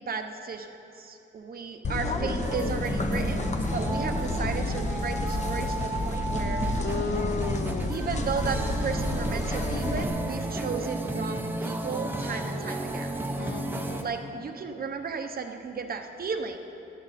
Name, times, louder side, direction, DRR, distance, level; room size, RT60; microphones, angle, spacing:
voice 1, 0.0-6.9 7.9-13.1 14.0-16.6, right 5 dB, 45° right, 6 dB, 0.9 m, -34 dB
sound 1, 1.8-10.0, left 2 dB, 35° left, 1.0 m, -30 dB
sound 2, 2.4-14.0, right 2 dB, 10° right, 0.8 m, -33 dB
voice 2, 6.8-7.9 13.4-14.1, left 6 dB, 55° left, 9 dB, 0.6 m, -34 dB
19.0 x 12.5 x 4.2 m, 2.8 s
wide cardioid pair, 170°, 21 cm